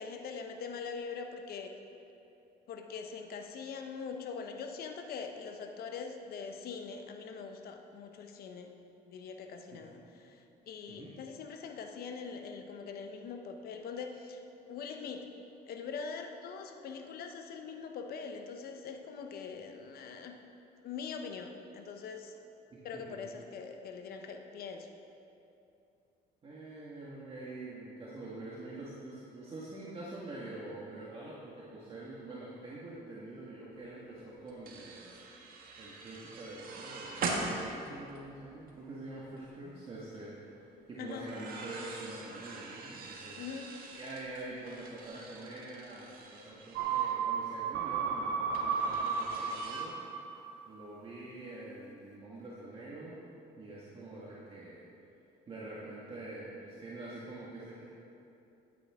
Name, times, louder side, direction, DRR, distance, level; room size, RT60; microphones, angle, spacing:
voice 1, 0.0-1.7 2.7-8.7 9.1-14.4 14.7-15.3 15.7-20.4 20.8-22.3 22.8-24.9 41.0-41.3 43.3-43.7, left 5 dB, 65° left, 5 dB, 1.0 m, -43 dB
voice 2, 22.7-23.2 26.4-35.2 35.8-40.6 40.9-43.4 43.9-50.0 50.6-53.2 53.6-54.8 55.5-57.8, right 2 dB, 35° right, -7 dB, 1.8 m, -45 dB
sound 1, 33.8-33.9 34.1-38.8 39.2-39.5 41.1-47.2 48.5-49.8, right 3 dB, 60° right, 1.6 m, -43 dB
sound 2, 46.8-50.5 50.8-50.9, right 6 dB, 90° right, 0.8 m, -33 dB
14.5 x 9.0 x 3.7 m, 2.8 s
cardioid pair, 110°, 17 cm